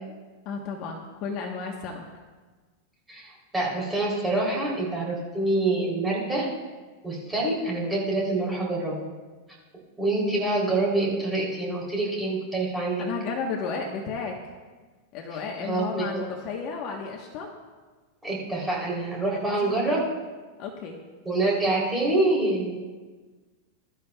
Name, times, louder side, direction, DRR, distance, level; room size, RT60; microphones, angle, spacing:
voice 1, 0.4-2.0 13.0-14.3 15.1-17.5 19.3-20.0 20.6-21.0, left 5 dB, 40° left, 1 dB, 1.2 m, -33 dB
voice 2, 3.1-6.5 7.0-9.1 10.0-13.0 15.6-16.1 18.2-20.0 21.2-22.8, right 2 dB, 5° right, -5 dB, 3.3 m, -26 dB
22.0 x 12.5 x 2.3 m, 1.4 s
supercardioid pair, 160°, 0 cm